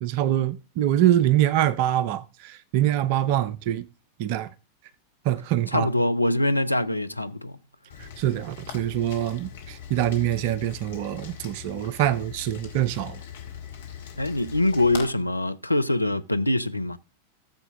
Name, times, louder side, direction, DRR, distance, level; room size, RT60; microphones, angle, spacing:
voice 1, 0.0-3.8 4.2-4.5 5.3-5.9 8.2-13.2, right 12 dB, 45° right, 0.6 m, -24 dB
voice 2, 5.7-7.6 14.2-17.0, left 1 dB, 85° left, 0.5 m, -24 dB
Rain, 7.9-15.1, left 8 dB, 65° left, 2.3 m, -41 dB
14.0 x 7.3 x 3.6 m
figure-of-eight pair, 90°, 0 cm